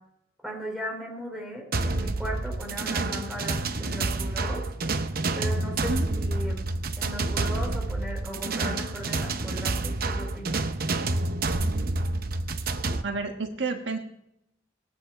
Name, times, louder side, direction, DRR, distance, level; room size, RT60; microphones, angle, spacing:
voice 1, 0.4-4.6 5.3-6.6 7.0-10.6, equal, ahead, -1 dB, 4.2 m, -37 dB
sound 1, 1.7-13.0, right 2 dB, 55° right, 0.8 m, -28 dB
voice 2, 5.8-6.1 13.0-14.0, right 3 dB, 75° right, 4 dB, 1.3 m, -30 dB
20.0 x 9.1 x 4.8 m, 0.82 s
head